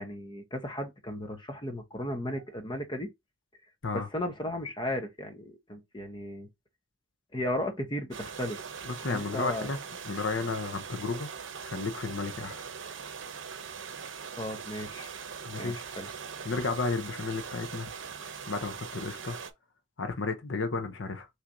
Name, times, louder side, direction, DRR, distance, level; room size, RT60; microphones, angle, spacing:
voice 1, 0.0-3.1 3.9-6.5 7.3-8.6 9.1-9.7 14.4-15.1 15.6-16.1, left 1 dB, 25° left, 0.9 m, -35 dB
sound 1, 8.1-19.5, right 6 dB, 75° right, 0.8 m, -41 dB
voice 2, 8.8-9.8 10.0-11.3 11.6-12.6 15.4-15.8 16.4-17.9 18.5-19.4 20.0-21.3, left 4 dB, 75° left, 0.8 m, -33 dB
5.8 x 3.3 x 2.6 m
head